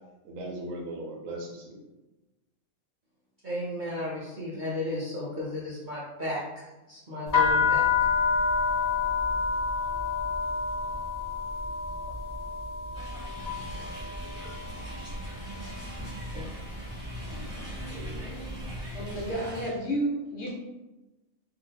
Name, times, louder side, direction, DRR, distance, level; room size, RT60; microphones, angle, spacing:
voice 1, 0.2-1.8 17.9-18.6, right 1 dB, 70° right, 0 dB, 1.0 m, -39 dB
voice 2, 3.4-7.8 16.3-16.5, left 1 dB, 45° right, -7 dB, 0.6 m, -34 dB
sound 1, 7.3-15.2 15.5-16.1 16.8-17.0 17.3-18.8, left 5 dB, 30° left, 1.0 m, -28 dB
sound 2, 12.9-19.7, equal, 5° right, 1.2 m, -41 dB
voice 3, 18.9-20.5, right 1 dB, 55° left, -4 dB, 1.2 m, -31 dB
2.7 x 2.5 x 3.8 m, 1.1 s
omnidirectional pair, 1.5 m